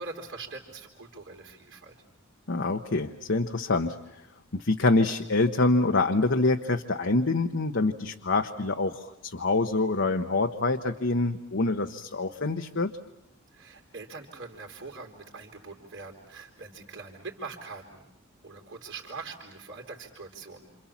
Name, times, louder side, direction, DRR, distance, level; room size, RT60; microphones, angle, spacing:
voice 1, 0.0-1.9 13.5-18.1 18.4-20.8, right 4 dB, 55° right, -1 dB, 3.6 m, -43 dB
voice 2, 2.5-4.0 4.5-12.9, left 3 dB, 55° left, 4 dB, 1.0 m, -26 dB
28.5 x 27.5 x 7.2 m, 0.84 s
head